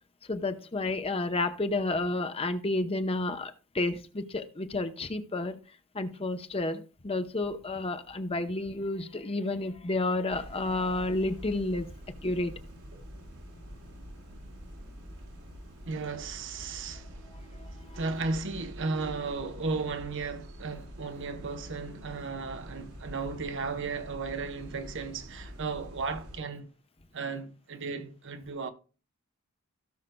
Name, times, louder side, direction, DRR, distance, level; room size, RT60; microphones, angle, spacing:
voice 1, 0.3-5.6 5.9-11.9 12.2-12.5, left 2 dB, 25° left, 0.8 m, -31 dB
sound 1, 10.3-26.4, equal, 85° right, 3.7 m, -46 dB
voice 2, 15.8-26.7 27.1-28.7, right 4 dB, 60° right, 1.0 m, -35 dB
17.0 x 6.5 x 2.3 m
head